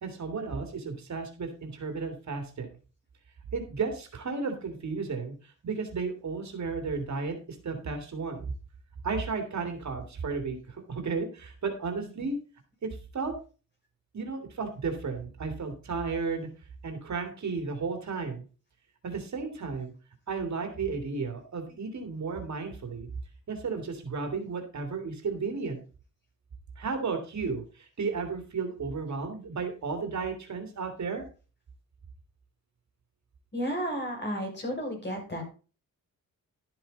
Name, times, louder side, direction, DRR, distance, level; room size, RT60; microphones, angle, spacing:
voice 1, 0.0-2.7 3.5-7.4 7.6-8.5 9.0-12.4 12.8-13.3 14.1-16.5 16.8-18.4 19.0-19.9 20.3-23.1 23.5-25.8 26.8-31.2, right 4 dB, 60° right, 6 dB, 2.6 m, -33 dB
voice 2, 33.5-35.4, equal, 35° left, 1 dB, 6.0 m, -32 dB
12.0 x 7.8 x 4.1 m, 0.35 s
wide cardioid pair, 115°, 33 cm